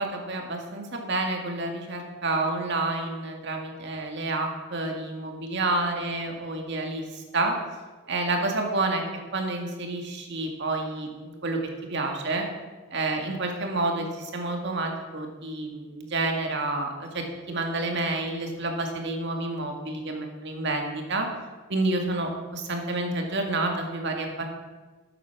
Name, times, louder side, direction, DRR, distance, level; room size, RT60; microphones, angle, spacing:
voice 1, 0.0-7.6 8.1-9.0 9.3-12.5 12.9-21.3 21.7-24.5, right 2 dB, 60° right, 2 dB, 2.1 m, -29 dB
13.0 x 9.1 x 6.0 m, 1.3 s
head